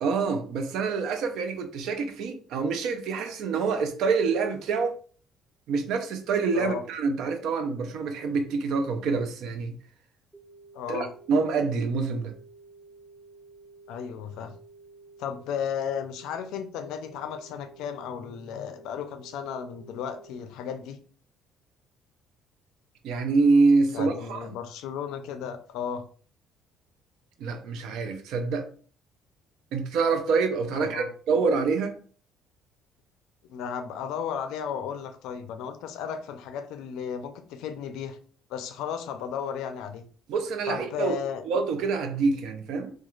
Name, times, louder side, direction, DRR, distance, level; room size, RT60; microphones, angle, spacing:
voice 1, 0.0-5.0 5.7-9.8 10.9-12.3 23.0-24.5 27.4-28.7 29.7-31.9 40.3-41.2 41.4-42.9, right 4 dB, 70° right, 0.4 m, -26 dB
sound 1, 10.3-20.3, right 3 dB, ahead, 0.3 m, -52 dB
voice 2, 10.7-11.1 13.9-14.5 15.2-21.0 23.9-26.0 30.7-31.1 33.5-38.2 38.5-40.0 40.7-41.4, left 7 dB, 80° left, 0.4 m, -34 dB
2.4 x 2.3 x 3.0 m
cardioid pair, 150°, 0 cm